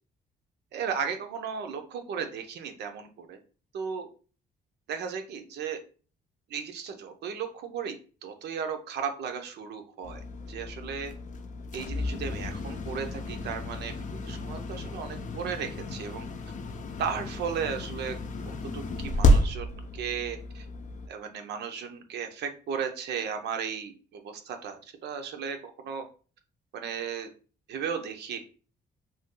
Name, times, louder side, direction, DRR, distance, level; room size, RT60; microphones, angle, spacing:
voice 1, 0.7-3.4 3.7-4.1 4.9-5.8 6.5-10.2 10.5-11.1 11.7-13.9 14.2-16.2 17.0-18.2 18.5-19.7 19.9-20.7 21.1-24.8 25.0-26.0 26.7-27.3 27.7-28.4, right 7 dB, 80° right, 6 dB, 0.6 m, -35 dB
sound 1, 10.0-21.1, left 1 dB, 45° left, 0.5 m, -31 dB
2.6 x 2.2 x 3.6 m, 0.37 s
cardioid pair, 95°, 17 cm